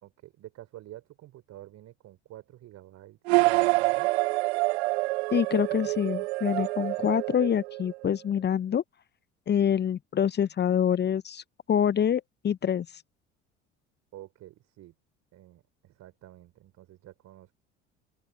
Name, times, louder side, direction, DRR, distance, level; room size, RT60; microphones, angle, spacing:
voice 1, 0.0-4.1 14.1-14.9 15.3-17.5, right 14 dB, 50° right, 3.7 m, -49 dB
sound 1, 3.3-8.1, right 23 dB, 65° right, 0.8 m, -27 dB
voice 2, 5.3-8.8 9.5-11.4 11.7-13.0, left 8 dB, 30° left, 0.9 m, -26 dB
figure-of-eight pair, 60°, 36 cm